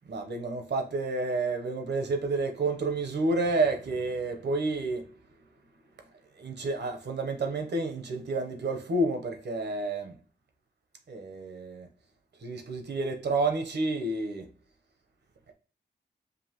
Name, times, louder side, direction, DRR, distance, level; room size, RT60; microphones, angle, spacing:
voice 1, 0.1-5.1 6.4-10.2 11.1-11.9 12.4-14.5, right 2 dB, 70° right, 0.9 m, -30 dB
5.3 x 2.5 x 2.9 m
cardioid pair, 55°, 18 cm